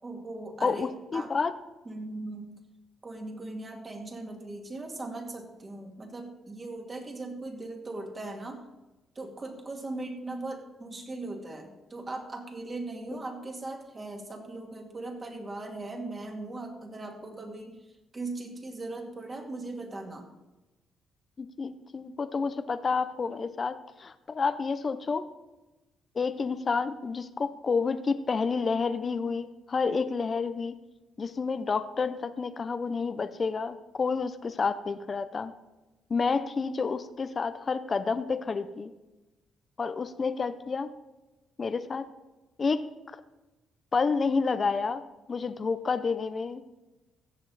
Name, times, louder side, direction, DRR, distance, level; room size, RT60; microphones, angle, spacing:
voice 1, 0.0-1.3 1.9-2.5 3.0-8.6 9.1-20.3, right 2 dB, 30° right, 2 dB, 2.3 m, -39 dB
voice 2, 0.6-1.5 21.4-25.2 26.1-30.8 31.2-35.5 36.1-38.9 39.8-40.9 41.6-42.1 42.6-43.2 43.9-45.0 45.3-46.6, left 4 dB, 40° left, 12 dB, 0.6 m, -29 dB
15.5 x 7.1 x 4.1 m, 1.1 s
cardioid pair, 90°, 0 cm